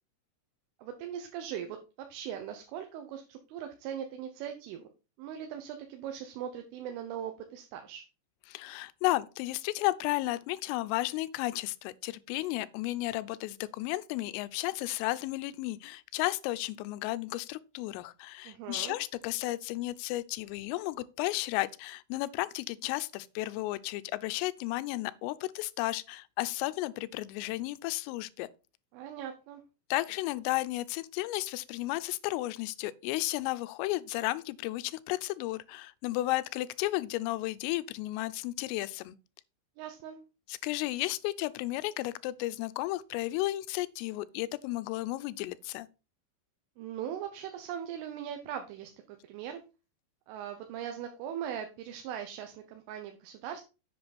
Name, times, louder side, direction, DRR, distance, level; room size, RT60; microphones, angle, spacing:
voice 1, 0.8-4.9 5.2-8.0 18.4-19.0 28.9-29.6 39.8-40.2 46.8-49.6 50.3-53.6, right 9 dB, 80° right, 3.4 m, -40 dB
voice 2, 8.5-28.5 29.9-39.2 40.5-45.9, left 18 dB, 85° left, 3.2 m, -33 dB
7.8 x 7.7 x 4.2 m
omnidirectional pair, 5.7 m